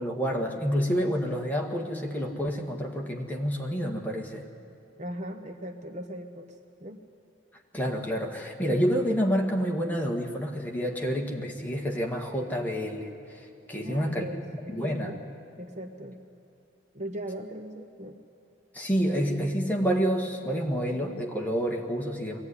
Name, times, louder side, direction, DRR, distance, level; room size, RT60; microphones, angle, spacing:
voice 1, 0.0-4.5 7.7-14.2 14.7-15.1 18.7-22.4, equal, 10° left, 0 dB, 1.7 m, -28 dB
voice 2, 5.0-6.5 6.8-7.0 13.8-15.2 15.6-16.2 16.9-18.2, equal, 35° right, 6 dB, 0.9 m, -39 dB
22.0 x 15.5 x 9.8 m, 2.8 s
head